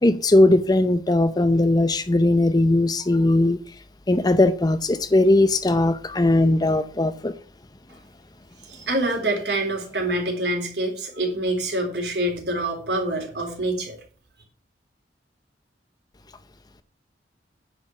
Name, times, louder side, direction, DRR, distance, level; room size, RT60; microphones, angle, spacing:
voice 1, 0.0-3.6 4.1-7.3, left 2 dB, 20° left, 0.6 m, -19 dB
voice 2, 8.7-14.0, right 1 dB, 70° right, 3.9 m, -26 dB
9.9 x 6.0 x 6.2 m
head